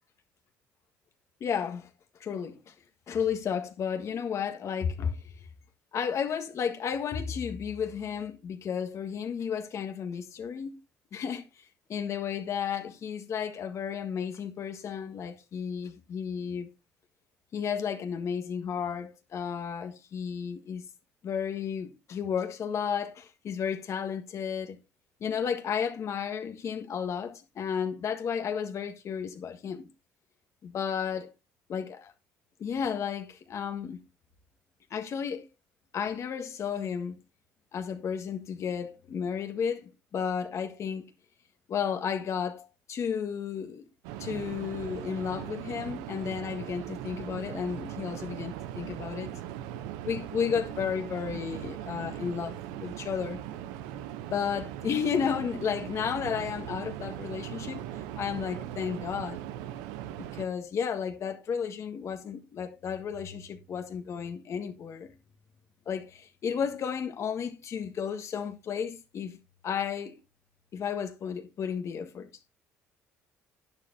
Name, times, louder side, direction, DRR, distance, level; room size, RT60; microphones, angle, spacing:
voice 1, 1.4-1.9 2.2-2.7 3.1-5.2 5.9-10.7 11.1-16.7 17.5-20.8 21.2-24.8 25.2-29.9 30.6-31.3 31.7-32.1 32.6-34.0 34.9-35.4 35.9-37.2 37.7-41.1 41.7-43.8 44.2-49.3 50.0-53.4 54.3-57.8 58.2-59.4 60.2-65.1 65.8-69.4 69.6-70.2 70.7-72.3, left 7 dB, 55° left, 1.6 m, -33 dB
sound 1, 44.0-60.5, right 11 dB, 90° right, 0.7 m, -39 dB
11.5 x 10.0 x 2.7 m
supercardioid pair, 75°, 6 cm